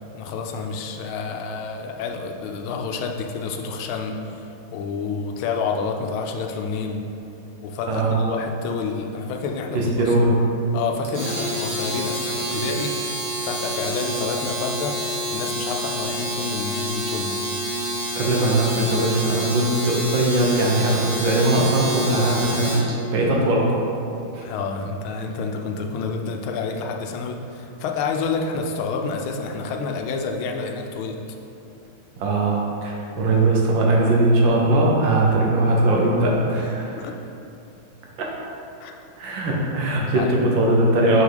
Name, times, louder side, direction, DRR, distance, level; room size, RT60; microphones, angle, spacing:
voice 1, 0.1-7.0 7.6-10.1 10.7-12.9 13.4-15.0 15.3-17.4 24.4-31.4 37.0-37.2 38.8-38.9 40.1-40.4, left 4 dB, 85° left, 3 dB, 1.5 m, -29 dB
voice 2, 7.9-8.2 9.7-10.3 18.1-22.8 23.1-23.8 24.3-24.5 32.2-37.0 38.2-38.3 39.2-41.2, right 2 dB, 70° right, -2 dB, 1.6 m, -20 dB
Domestic sounds home sounds, 11.0-22.9, right 1 dB, 10° right, 0.9 m, -28 dB
5.8 x 5.2 x 3.9 m, 2.9 s
omnidirectional pair, 2.2 m